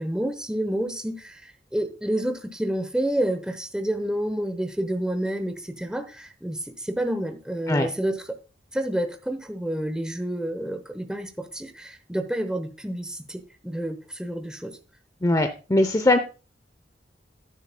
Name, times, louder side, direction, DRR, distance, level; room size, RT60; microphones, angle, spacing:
voice 1, 0.0-8.2 8.7-14.8, right 1 dB, 5° right, 0.9 m, -29 dB
voice 2, 15.2-16.2, left 1 dB, 20° left, 0.6 m, -20 dB
10.5 x 9.4 x 2.2 m
head